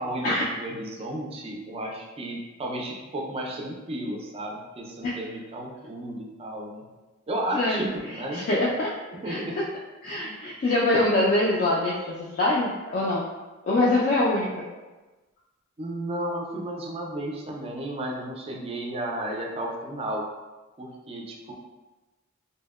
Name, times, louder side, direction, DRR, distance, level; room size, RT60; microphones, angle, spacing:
voice 1, 0.0-6.8 7.3-8.5 9.2-9.6 10.3-10.4 15.8-20.3 20.8-21.5, right 1 dB, 30° right, -1 dB, 0.4 m, -33 dB
voice 2, 8.3-9.0 9.3-9.6 10.0-13.3 13.6-14.6, left 2 dB, 45° left, -6 dB, 0.3 m, -24 dB
2.7 x 2.0 x 2.3 m, 1.2 s
head